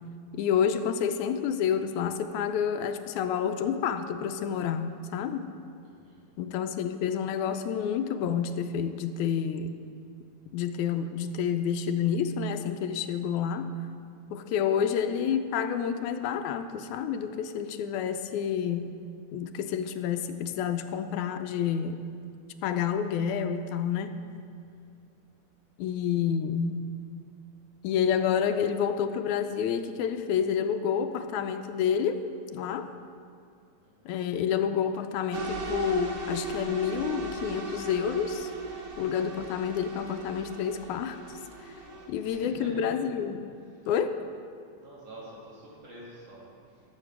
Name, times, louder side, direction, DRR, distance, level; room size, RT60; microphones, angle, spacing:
voice 1, 0.3-5.5 6.4-9.7 10.5-13.7 14.3-19.0 19.3-22.0 22.6-24.1 25.8-26.8 27.8-32.2 32.5-32.9 34.1-38.5 39.0-41.2 42.1-43.4 43.9-44.2, left 8 dB, 90° left, 7 dB, 2.0 m, -29 dB
voice 2, 5.8-6.3 24.7-24.9 33.8-34.2 41.8-43.0 43.8-43.9 44.8-46.8, right 1 dB, 55° right, -6 dB, 3.6 m, -48 dB
sound 1, 35.3-42.1, right 3 dB, 80° right, 2.9 m, -37 dB
13.0 x 7.8 x 6.0 m, 2.4 s
omnidirectional pair, 3.3 m